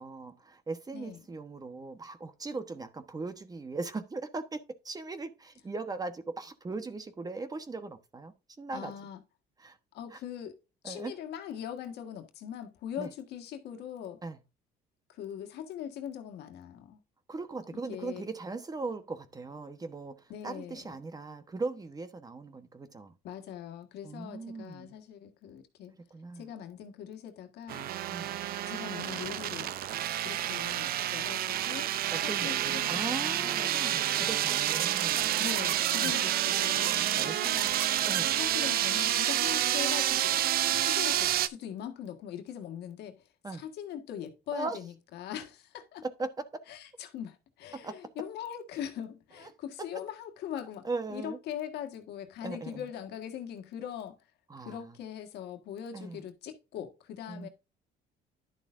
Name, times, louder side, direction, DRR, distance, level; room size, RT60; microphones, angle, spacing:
voice 1, 0.0-8.9 9.6-9.8 10.1-10.2 10.8-11.1 13.0-13.1 14.2-14.4 17.3-23.1 24.0-24.9 26.1-26.5 28.1-28.4 32.1-35.4 36.0-36.2 37.2-37.5 38.0-38.4 43.4-43.6 44.5-44.8 46.0-46.5 47.8-47.9 49.4-49.5 49.8-49.9 50.8-51.4 52.4-52.9 54.5-55.0 55.9-56.2 57.3-57.5, right 3 dB, 20° right, 1.2 m, -39 dB
voice 2, 8.7-9.2 9.9-10.5 10.8-14.2 15.1-17.0 17.7-18.3 20.3-20.8 23.2-25.9 26.3-27.9 28.6-29.7 30.2-31.9 32.2-33.7 35.4-37.8 38.3-40.3 40.7-43.2 43.6-46.0 46.7-54.2 54.6-57.5, left 9 dB, 75° left, 1.7 m, -41 dB
sound 1, 27.7-41.5, right 12 dB, 60° right, 0.6 m, -29 dB
11.0 x 6.6 x 2.6 m
cardioid pair, 110°, 17 cm